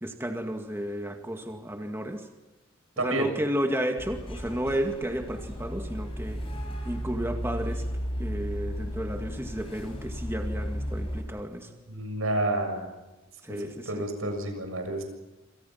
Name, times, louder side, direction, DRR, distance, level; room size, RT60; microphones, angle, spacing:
voice 1, 0.0-2.3 3.0-6.4 6.9-7.8 8.2-11.7 13.4-14.1, equal, 10° right, 4 dB, 2.1 m, -32 dB
voice 2, 3.0-3.3 11.9-12.9 13.6-15.0, right 1 dB, 90° right, 5 dB, 6.9 m, -30 dB
sound 1, 4.0-11.2, equal, 25° left, 6.6 m, -34 dB
27.5 x 27.5 x 5.9 m, 1.1 s
head